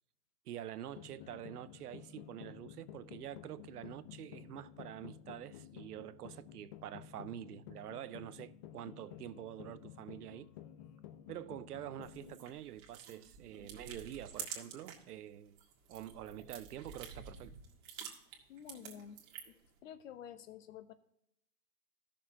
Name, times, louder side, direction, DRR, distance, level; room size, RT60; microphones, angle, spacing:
voice 1, 0.5-10.5 11.3-15.6 15.9-17.5, right 11 dB, 75° right, 0.7 m, -47 dB
sound 1, 0.9-12.4, left 11 dB, 30° left, 0.5 m, -53 dB
sound 2, 12.0-15.1 15.5-19.7, right 7 dB, 35° right, 1.9 m, -49 dB
voice 2, 18.5-19.2 19.5-19.6 19.8-20.9, left 9 dB, 55° left, 1.0 m, -50 dB
14.0 x 6.6 x 2.8 m
hypercardioid pair, 135°, 46 cm